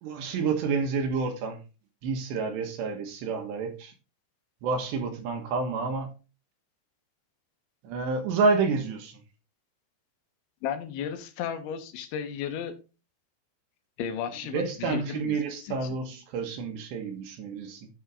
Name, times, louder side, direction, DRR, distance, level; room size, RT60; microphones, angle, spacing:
voice 1, 0.0-1.6 2.0-3.9 4.6-6.1 7.8-9.2 14.5-17.9, right 4 dB, 75° right, 3.3 m, -29 dB
voice 2, 10.6-12.8 14.0-16.0, left 8 dB, 80° left, 3.4 m, -34 dB
9.6 x 6.2 x 3.7 m
omnidirectional pair, 5.4 m